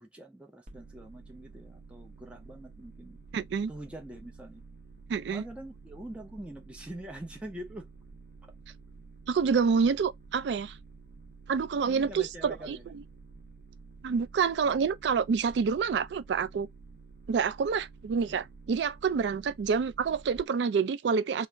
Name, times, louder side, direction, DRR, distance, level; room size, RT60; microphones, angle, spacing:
voice 1, 0.0-3.2 3.7-4.6 5.3-7.9 8.4-8.5 11.8-12.8 18.3-18.4, right 1 dB, 5° right, 0.5 m, -44 dB
sound 1, 0.7-20.4, right 4 dB, 45° right, 0.7 m, -51 dB
voice 2, 3.3-3.7 5.1-5.4 9.3-10.8 11.5-13.0 14.0-16.7 17.3-21.5, right 5 dB, 75° right, 0.3 m, -28 dB
2.5 x 2.0 x 3.3 m
head